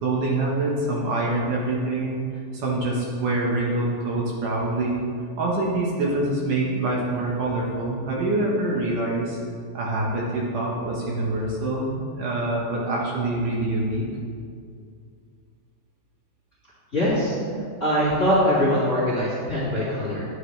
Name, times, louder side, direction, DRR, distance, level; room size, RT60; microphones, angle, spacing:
voice 1, 0.0-2.2 2.5-5.0 5.4-9.4 9.7-14.0, right 2 dB, 65° right, -4 dB, 2.5 m, -25 dB
voice 2, 16.9-17.3 17.8-20.3, equal, 25° left, -10 dB, 2.0 m, -22 dB
11.5 x 9.4 x 3.3 m, 2.3 s
omnidirectional pair, 4.5 m